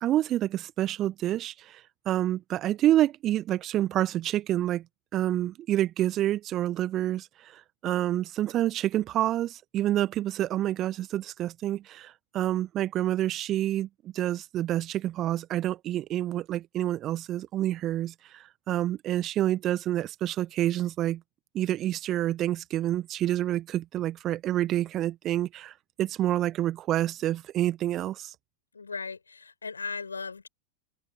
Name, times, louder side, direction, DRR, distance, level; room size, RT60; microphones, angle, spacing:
voice 1, 0.0-4.8 5.1-21.2 21.5-28.3, right 13 dB, 30° right, 1.5 m, -28 dB
voice 2, 28.7-30.5, left 4 dB, 75° left, 7.5 m, -37 dB
open air
figure-of-eight pair, 90°, 0 cm